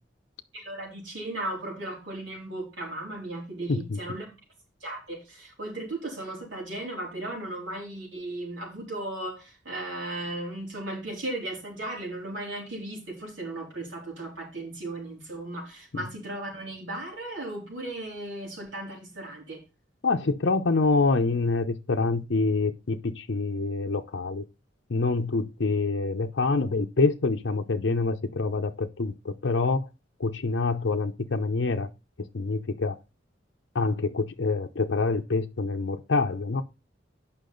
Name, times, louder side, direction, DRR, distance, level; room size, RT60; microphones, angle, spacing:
voice 1, 0.5-4.3 4.8-19.6, right 1 dB, 85° right, 3.6 m, -36 dB
voice 2, 20.0-24.4 24.9-29.9 30.2-31.9 32.3-33.0 33.7-36.6, left 3 dB, 70° left, 0.7 m, -26 dB
8.4 x 5.7 x 3.9 m
head